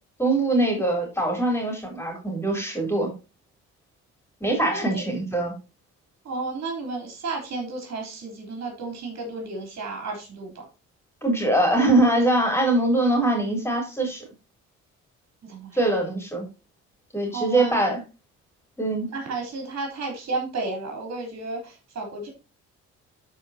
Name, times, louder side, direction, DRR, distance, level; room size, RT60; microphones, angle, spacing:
voice 1, 0.2-3.1 4.4-5.5 11.2-14.3 15.7-16.5 17.1-18.0 18.8-19.1, right 1 dB, 10° left, 2 dB, 3.7 m, -23 dB
voice 2, 4.7-5.0 6.2-10.6 15.4-15.8 17.3-17.8 19.1-22.3, right 3 dB, 60° right, 1 dB, 3.7 m, -32 dB
13.0 x 4.9 x 2.8 m, 0.29 s
cardioid pair, 90°, 30 cm